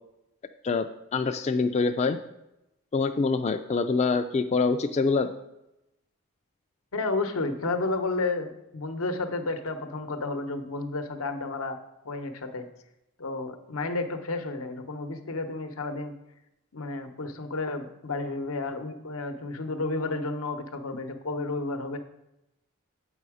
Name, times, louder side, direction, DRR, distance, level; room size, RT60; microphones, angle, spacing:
voice 1, 1.1-2.2 2.9-5.3, left 4 dB, 30° left, 7 dB, 0.3 m, -25 dB
voice 2, 6.9-11.8 12.0-12.7 13.2-16.1 16.7-22.0, left 3 dB, 85° left, 7 dB, 0.9 m, -31 dB
8.4 x 5.4 x 4.9 m, 0.89 s
head